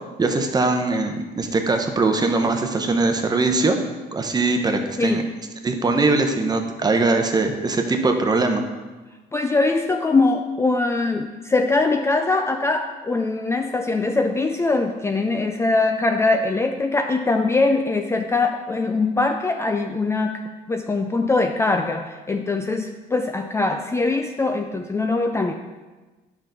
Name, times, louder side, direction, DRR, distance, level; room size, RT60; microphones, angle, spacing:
voice 1, 0.2-3.8 4.1-5.2 5.6-8.6, right 3 dB, 25° right, 5 dB, 0.9 m, -21 dB
voice 2, 9.3-20.4 20.7-25.5, left 3 dB, 15° left, 5 dB, 0.4 m, -22 dB
9.0 x 5.9 x 3.9 m, 1.2 s
cardioid pair, 110°, 17 cm